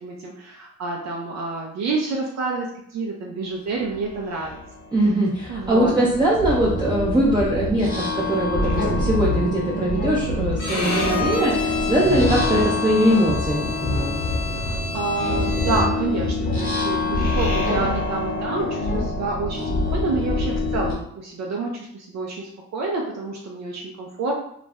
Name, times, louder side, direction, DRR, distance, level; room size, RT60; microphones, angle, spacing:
voice 1, 0.0-4.6 5.5-5.9 14.5-24.3, right 3 dB, 60° right, -1 dB, 0.5 m, -28 dB
sound 1, 3.9-4.0 4.4-20.9, left 2 dB, 30° left, 0.8 m, -25 dB
voice 2, 4.9-13.7, right 1 dB, 15° right, -5 dB, 0.5 m, -21 dB
Bowed string instrument, 10.6-16.1, left 4 dB, 75° left, 0.8 m, -32 dB
2.4 x 2.0 x 3.4 m, 0.70 s
cardioid pair, 90°, 30 cm